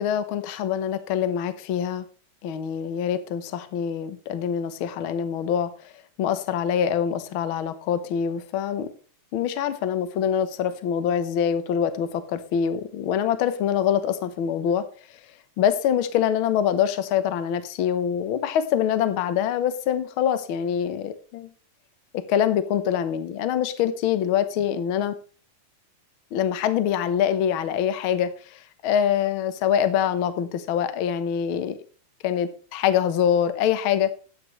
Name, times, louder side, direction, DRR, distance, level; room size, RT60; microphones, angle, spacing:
voice 1, 0.0-2.0 2.4-5.7 6.2-8.9 9.3-14.8 15.6-21.5 22.1-25.1 26.3-28.3 28.8-31.8 32.2-34.1, left 9 dB, 60° left, 11 dB, 1.5 m, -24 dB
12.5 x 9.3 x 3.1 m, 0.37 s
omnidirectional pair, 3.4 m